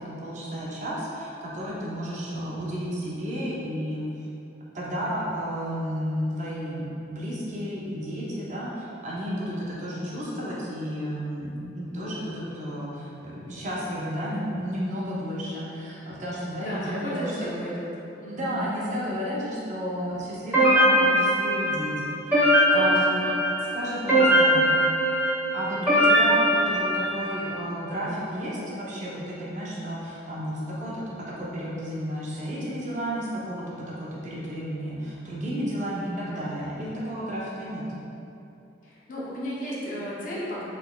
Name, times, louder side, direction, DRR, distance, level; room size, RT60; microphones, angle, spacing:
voice 1, 0.0-4.1 4.7-17.5 18.3-21.9 22.3-23.2 23.6-24.6 25.5-37.8, equal, 35° right, -6 dB, 0.5 m, -32 dB
voice 2, 16.6-17.9 18.2-18.6 22.7-23.2 38.8-40.6, equal, 40° left, -7 dB, 0.6 m, -34 dB
sound 1, 20.5-27.5, equal, 10° right, 0.8 m, -21 dB
3.7 x 3.3 x 2.2 m, 2.8 s
head